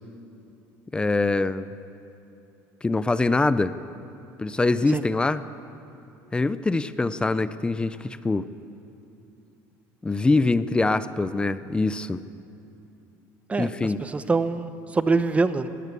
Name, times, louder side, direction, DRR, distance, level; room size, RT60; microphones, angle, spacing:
voice 1, 0.9-1.7 2.8-3.7 4.4-5.4 6.3-8.0 8.2-8.5 10.0-12.2 13.6-14.0, left 3 dB, 15° left, 14 dB, 0.5 m, -23 dB
voice 2, 13.5-15.7, right 3 dB, 20° right, 12 dB, 0.8 m, -24 dB
20.5 x 16.0 x 8.4 m, 2.8 s
cardioid pair, 130°, 7 cm